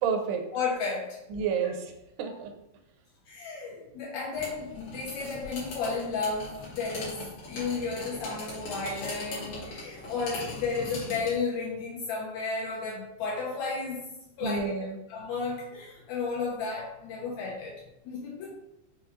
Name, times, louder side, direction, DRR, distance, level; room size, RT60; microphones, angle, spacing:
voice 1, 0.0-0.5 1.3-1.8 2.2-2.5 14.4-15.0, right 6 dB, 85° right, 4 dB, 2.2 m, -29 dB
voice 2, 0.5-1.2 3.3-14.1 14.4-14.7 15.1-17.8 18.1-18.5, left 4 dB, 75° left, -3 dB, 1.7 m, -33 dB
sound 1, 4.3-11.4, left 2 dB, 60° left, 2.0 m, -40 dB
5.5 x 2.3 x 2.9 m, 0.87 s
omnidirectional pair, 3.9 m